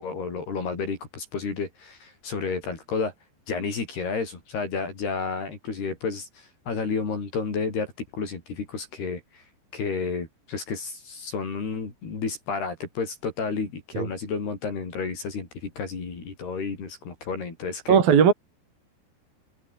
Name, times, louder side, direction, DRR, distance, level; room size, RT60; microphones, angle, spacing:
voice 1, 0.0-3.1 3.5-9.4 9.7-18.0, left 5 dB, 60° left, 7.7 m, -31 dB
voice 2, 17.9-18.3, right 7 dB, 55° right, 5.0 m, -17 dB
omnidirectional pair, 5.1 m